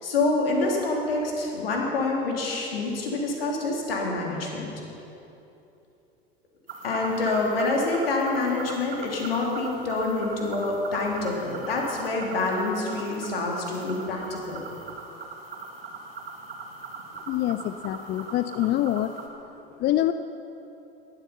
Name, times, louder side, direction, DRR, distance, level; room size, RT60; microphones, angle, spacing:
voice 1, 0.0-4.7 6.8-14.6, left 3 dB, 75° left, -1 dB, 3.1 m, -27 dB
sound 1, 6.7-19.3, right 4 dB, 75° right, 1.9 m, -40 dB
voice 2, 17.3-19.1 19.7-20.1, left 13 dB, 35° left, 11 dB, 0.6 m, -25 dB
18.0 x 12.5 x 5.7 m, 2.9 s
figure-of-eight pair, 75°, 30 cm